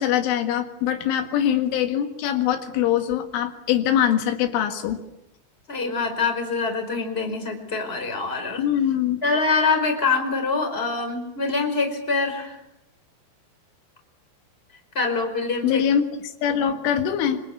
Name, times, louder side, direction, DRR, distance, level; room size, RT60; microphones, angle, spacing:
voice 1, 0.0-5.0 8.6-9.2 15.6-17.4, left 9 dB, 80° left, 6 dB, 4.3 m, -23 dB
voice 2, 5.7-8.6 9.2-12.6 14.9-15.8, left 4 dB, 10° left, 5 dB, 4.6 m, -24 dB
26.5 x 26.5 x 8.4 m, 0.81 s
omnidirectional pair, 5.6 m